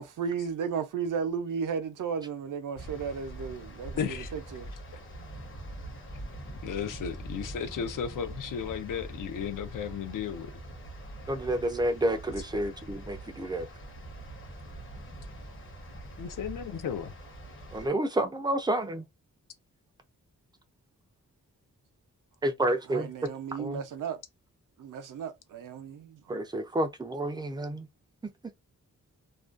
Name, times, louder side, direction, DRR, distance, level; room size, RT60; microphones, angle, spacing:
voice 1, 0.0-4.7 22.9-24.2 24.8-26.2, right 6 dB, 75° right, 0.5 m, -34 dB
sound 1, 2.8-17.9, right 1 dB, 40° left, 0.8 m, -43 dB
voice 2, 4.0-4.3 4.9-5.0 6.6-10.5 16.2-17.1, left 7 dB, 75° left, 0.5 m, -34 dB
voice 3, 11.3-13.7 17.7-19.0 22.4-23.3 23.6-23.8 26.3-27.9, right 1 dB, 15° right, 0.3 m, -29 dB
2.4 x 2.2 x 2.4 m
wide cardioid pair, 170°, 32 cm